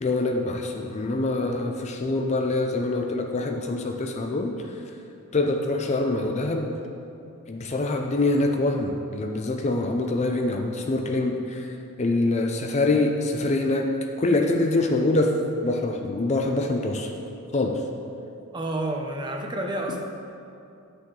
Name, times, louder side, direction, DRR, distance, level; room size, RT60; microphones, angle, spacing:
voice 1, 0.0-4.6 5.3-6.8 7.5-11.7 12.0-13.9 14.2-15.3 15.6-17.1 17.5-17.8, left 2 dB, 30° left, 3 dB, 0.4 m, -25 dB
voice 2, 18.5-20.0, right 1 dB, 20° right, 1 dB, 0.7 m, -29 dB
9.9 x 6.6 x 3.8 m, 2.7 s
head